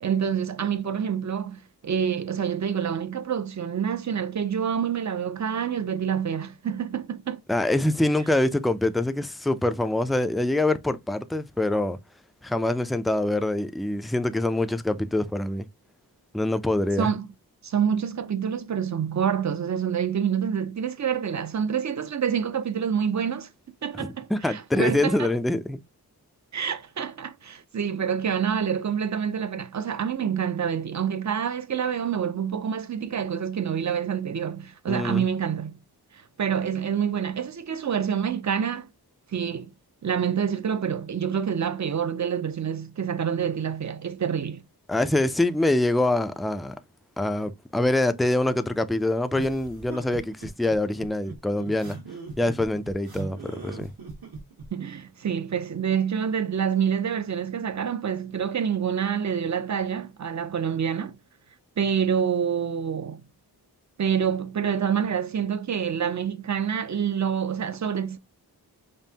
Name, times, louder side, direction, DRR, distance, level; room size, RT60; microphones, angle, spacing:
voice 1, 0.0-7.4 17.0-17.3 17.6-23.5 23.8-25.3 26.5-35.8 36.4-38.9 39.3-39.7 40.0-44.6 54.7-61.2 61.8-63.2 64.0-68.2, right 8 dB, 45° right, 0.6 m, -27 dB
voice 2, 7.5-12.0 12.4-15.7 16.3-17.1 23.9-25.8 34.9-35.3 44.9-46.8 47.2-52.0 52.4-53.9, left 1 dB, ahead, 0.3 m, -25 dB
sound 1, 49.3-54.7, right 4 dB, 70° right, 1.5 m, -40 dB
5.3 x 2.1 x 2.8 m
wide cardioid pair, 65°, 39 cm